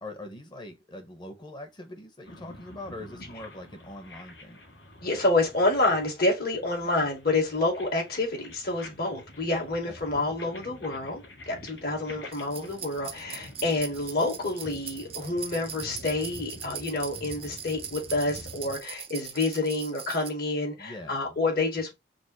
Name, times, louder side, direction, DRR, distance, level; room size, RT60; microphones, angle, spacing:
voice 1, 0.0-4.6 6.8-7.1 10.1-10.8 20.8-21.4, left 1 dB, 25° left, 1.1 m, -43 dB
sound 1, 2.2-18.8, left 1 dB, 80° left, 2.6 m, -48 dB
voice 2, 5.0-21.9, left 2 dB, 60° left, 2.1 m, -28 dB
sound 2, 12.3-20.3, right 8 dB, 35° right, 0.6 m, -41 dB
5.2 x 2.1 x 4.6 m
head